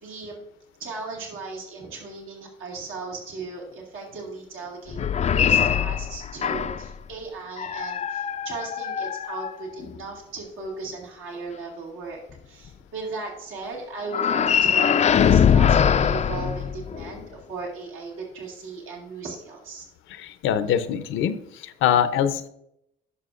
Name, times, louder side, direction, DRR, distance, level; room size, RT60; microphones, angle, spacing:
voice 1, 0.0-0.4 0.8-19.9, right 3 dB, 80° right, -1 dB, 2.1 m, -37 dB
sound 1, 4.9-6.9 7.6-10.0 14.1-17.2, left 8 dB, 35° left, 0.4 m, -22 dB
voice 2, 20.2-21.4 21.6-22.5, left 9 dB, 75° left, 12 dB, 0.7 m, -23 dB
11.0 x 6.2 x 2.5 m, 0.77 s
cardioid pair, 85°, 21 cm